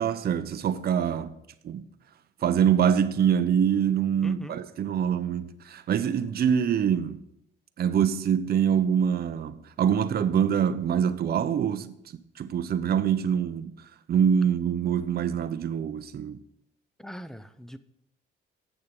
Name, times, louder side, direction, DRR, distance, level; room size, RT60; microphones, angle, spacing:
voice 1, 0.0-1.3 1.6-1.9 2.4-7.2 7.8-12.0 12.4-13.7 14.1-16.4, right 8 dB, 50° right, 0.6 m, -25 dB
voice 2, 4.2-4.6 17.0-17.8, equal, ahead, 0.6 m, -41 dB
8.0 x 6.8 x 5.2 m
cardioid pair, 90°, 20 cm